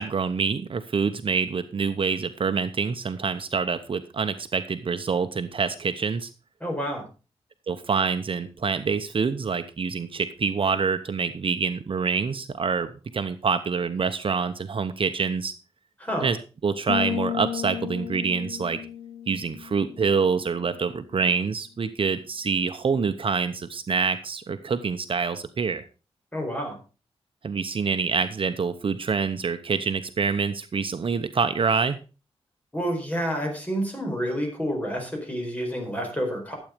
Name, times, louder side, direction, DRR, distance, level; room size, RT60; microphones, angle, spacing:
voice 1, 0.0-6.3 7.7-15.5 16.2-16.4 16.6-18.8 19.3-25.8 27.4-32.0, right 5 dB, 55° right, 9 dB, 0.8 m, -26 dB
voice 2, 6.6-7.0 16.0-16.3 26.3-26.8 32.7-36.5, equal, 15° left, 2 dB, 4.5 m, -29 dB
sound 1, 16.9-20.6, left 9 dB, 85° left, 0.6 m, -33 dB
12.0 x 8.4 x 5.1 m, 0.34 s
wide cardioid pair, 115°, 11 cm